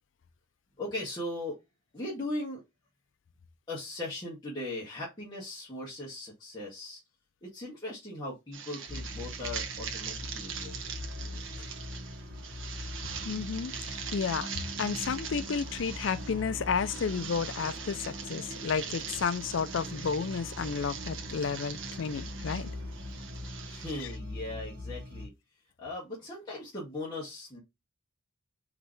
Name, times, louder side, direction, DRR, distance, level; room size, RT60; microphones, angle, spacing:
voice 1, 0.8-1.6 1.9-2.6 3.7-7.0 7.4-10.8 23.7-25.3 25.8-27.6, left 1 dB, 20° left, 1.7 m, -38 dB
sound 1, 8.5-24.2, right 7 dB, 70° right, 1.1 m, -42 dB
sound 2, 8.9-25.2, left 1 dB, 45° right, 1.7 m, -42 dB
voice 2, 13.2-13.7 14.1-22.7, left 6 dB, 65° left, 0.4 m, -32 dB
4.9 x 3.2 x 3.2 m
head